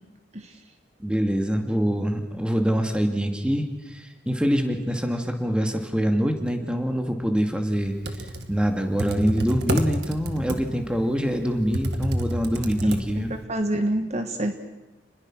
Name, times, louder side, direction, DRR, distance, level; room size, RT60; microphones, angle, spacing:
voice 1, 1.0-8.0 8.5-13.3, equal, 5° right, 4 dB, 2.3 m, -25 dB
Computer keyboard, 7.8-13.4, right 1 dB, 65° right, 2.0 m, -30 dB
voice 2, 12.8-14.6, right 1 dB, 40° right, 7 dB, 1.5 m, -28 dB
29.5 x 21.0 x 6.2 m, 1.1 s
head